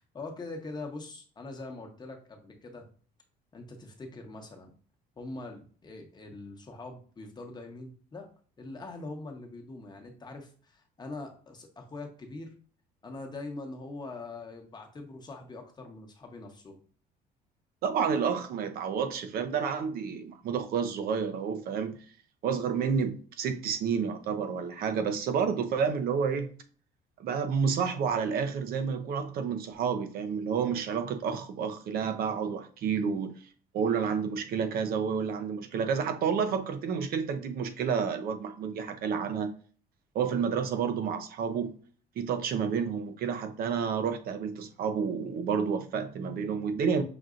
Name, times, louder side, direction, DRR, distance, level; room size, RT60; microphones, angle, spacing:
voice 1, 0.0-2.9 3.5-4.7 5.2-8.3 8.6-12.5 13.0-16.8, left 2 dB, 25° left, 0.9 m, -43 dB
voice 2, 17.8-22.0 22.4-26.5 27.2-33.4 33.7-39.5 40.1-41.8 42.2-47.0, right 6 dB, 60° right, 0.6 m, -30 dB
5.9 x 2.6 x 2.4 m
cardioid pair, 115°, 17 cm